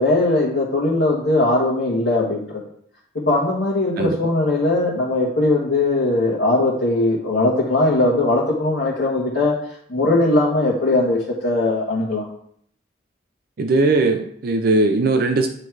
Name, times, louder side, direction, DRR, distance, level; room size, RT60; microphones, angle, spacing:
voice 1, 0.0-2.6 3.3-9.5 9.9-12.3, left 2 dB, 65° left, -7 dB, 1.4 m, -19 dB
voice 2, 13.6-15.5, right 3 dB, 50° right, 6 dB, 0.4 m, -19 dB
9.1 x 3.2 x 4.7 m, 0.67 s
head